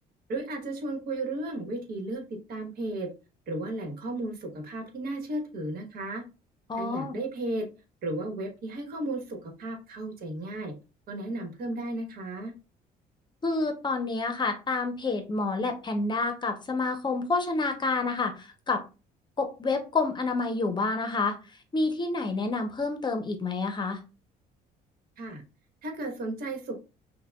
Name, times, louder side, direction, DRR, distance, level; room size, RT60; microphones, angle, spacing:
voice 1, 0.3-2.2 2.5-3.1 3.5-6.2 6.8-7.7 8.0-10.7 11.1-12.5 25.2-25.4 25.8-26.8, right 2 dB, 65° right, 4 dB, 1.3 m, -34 dB
voice 2, 6.7-7.2 13.4-18.8 19.4-21.4 21.7-24.0, left 3 dB, 25° left, 7 dB, 0.7 m, -28 dB
5.6 x 2.2 x 2.2 m, 0.30 s
cardioid pair, 110°, 17 cm